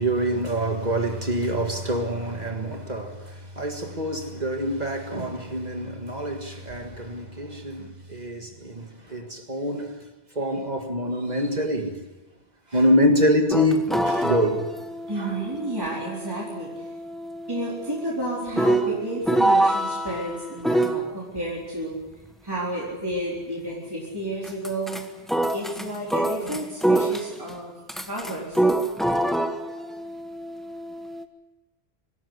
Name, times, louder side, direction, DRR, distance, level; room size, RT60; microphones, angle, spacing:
voice 1, 0.0-9.9 10.4-12.0 12.7-14.7 15.2-15.3, equal, 40° right, 2.0 m, -25 dB
sound 1, 13.5-21.0 24.4-25.0 25.3-27.5 27.9-31.2, right 1 dB, ahead, 1.3 m, -26 dB
voice 2, 15.1-16.9 17.5-22.0 22.4-25.0 25.5-27.7 28.1-28.7, right 1 dB, 20° right, 4.2 m, -31 dB
24.5 x 13.5 x 9.7 m
omnidirectional pair, 1.1 m